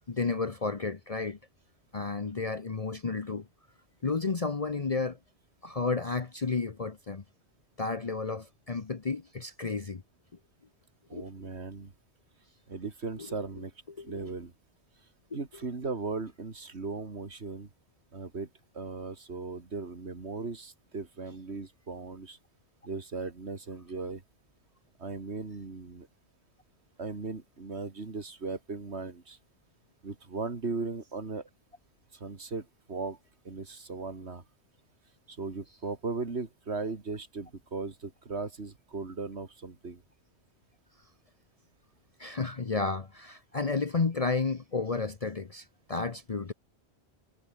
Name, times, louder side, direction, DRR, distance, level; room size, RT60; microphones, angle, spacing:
voice 1, 0.1-1.4 1.9-3.5 4.0-5.2 5.6-7.2 7.8-10.0 11.1-11.3 13.2-13.3 14.0-14.3 42.2-46.5, left 4 dB, 35° left, 1.0 m, -32 dB
voice 2, 11.1-11.9 12.7-13.7 14.0-14.5 15.3-17.7 18.1-18.5 18.7-22.4 22.8-24.2 25.0-26.1 27.0-29.4 30.0-31.5 32.1-33.2 33.4-34.4 35.3-40.0, right 4 dB, 85° right, 2.7 m, -37 dB
omnidirectional pair, 1.1 m